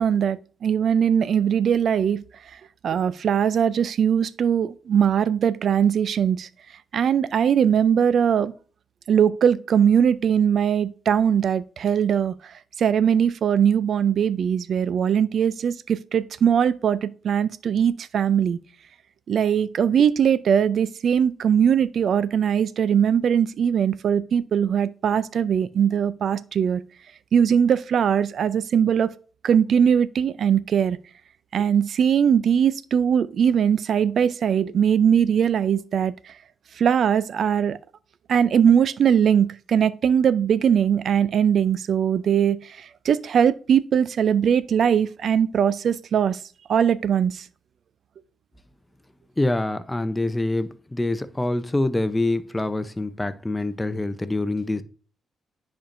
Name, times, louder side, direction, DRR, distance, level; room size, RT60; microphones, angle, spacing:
voice 1, 0.0-2.2 2.8-6.5 6.9-8.5 9.1-18.6 19.3-26.8 27.3-29.1 29.4-31.0 31.5-36.1 36.8-37.8 38.3-46.4 46.7-47.4, right 8 dB, 65° right, 0.4 m, -20 dB
voice 2, 49.4-54.8, left 2 dB, 10° left, 0.6 m, -25 dB
10.0 x 4.4 x 2.6 m
cardioid pair, 95°, 0 cm